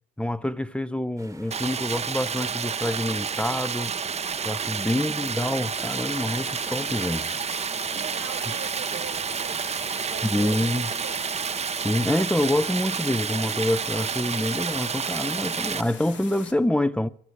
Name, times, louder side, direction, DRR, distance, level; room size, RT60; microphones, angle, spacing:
voice 1, 0.2-3.9 4.4-7.3 10.3-10.9 11.8-17.1, left 1 dB, 5° left, 0.6 m, -26 dB
sound 1, 1.2-16.2, right 2 dB, 15° right, 1.2 m, -50 dB
Stream, 1.5-15.8, right 6 dB, 35° right, 0.7 m, -30 dB
sound 2, 5.7-16.5, left 7 dB, 75° left, 1.7 m, -43 dB
voice 2, 7.9-11.2, right 12 dB, 80° right, 0.6 m, -42 dB
14.5 x 11.5 x 7.7 m
cardioid pair, 90°, 19 cm